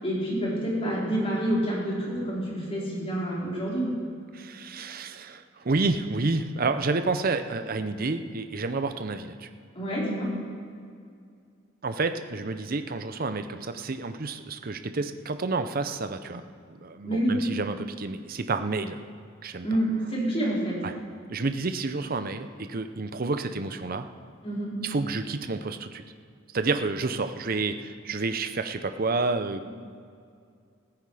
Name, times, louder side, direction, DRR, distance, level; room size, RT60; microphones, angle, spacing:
voice 1, 0.0-3.9 9.7-10.3 17.0-17.4 19.6-20.8 24.4-24.7, right 1 dB, 30° left, -6 dB, 4.7 m, -28 dB
voice 2, 4.3-9.5 11.8-16.4 16.7-19.0 19.4-19.7 20.8-20.9 21.3-24.1 24.8-26.0 26.5-29.7, right 3 dB, 45° right, 9 dB, 0.7 m, -29 dB
15.0 x 15.0 x 4.9 m, 2.3 s
head